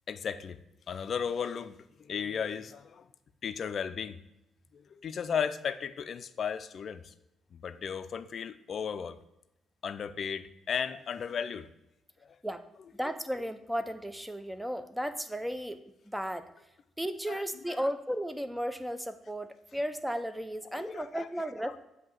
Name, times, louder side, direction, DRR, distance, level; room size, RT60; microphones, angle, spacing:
voice 1, 0.1-0.6 0.9-3.1 3.4-4.2 4.7-7.1 7.5-9.2 9.8-11.7 17.3-17.4 17.7-17.8 20.7-21.3, left 7 dB, 55° left, 12 dB, 0.4 m, -35 dB
voice 2, 13.0-16.5 17.0-21.8, equal, 5° right, 10 dB, 0.6 m, -35 dB
7.7 x 2.8 x 6.0 m, 0.89 s
cardioid pair, 90°, 0 cm